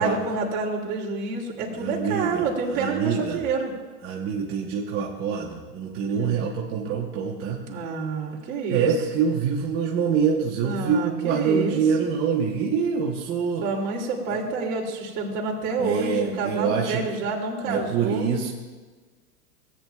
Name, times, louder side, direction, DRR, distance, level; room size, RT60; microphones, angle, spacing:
voice 1, 0.0-3.7 6.1-6.4 7.7-8.9 10.6-12.1 13.6-18.3, right 4 dB, 50° right, -2 dB, 2.7 m, -28 dB
voice 2, 1.8-2.4 2.7-3.4 4.0-7.6 8.7-13.6 14.3-14.4 15.8-17.0 17.7-18.5, right 6 dB, 30° right, -2 dB, 1.0 m, -25 dB
17.5 x 9.0 x 2.3 m, 1.4 s
hypercardioid pair, 130°, 47 cm